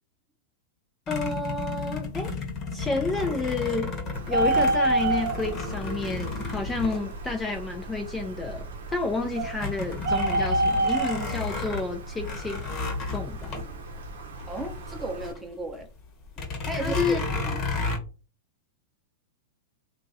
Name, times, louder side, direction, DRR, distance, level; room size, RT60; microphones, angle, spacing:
sound 1, 1.1-7.7 8.3-8.4 8.7-15.4 15.7-15.8 16.3-18.0, left 4 dB, 35° left, 1.0 m, -32 dB
voice 1, 1.1-2.4 2.7-3.9 4.3-12.6 13.1-13.6 16.7-17.2, left 3 dB, 15° left, 3 dB, 0.4 m, -30 dB
Bird, 4.1-15.3, right 2 dB, 80° right, 0.7 m, -30 dB
voice 2, 14.5-15.9 16.6-17.6, right 2 dB, 15° right, 4 dB, 0.7 m, -35 dB
2.9 x 2.4 x 2.7 m, 0.35 s
hypercardioid pair, 120°, 0 cm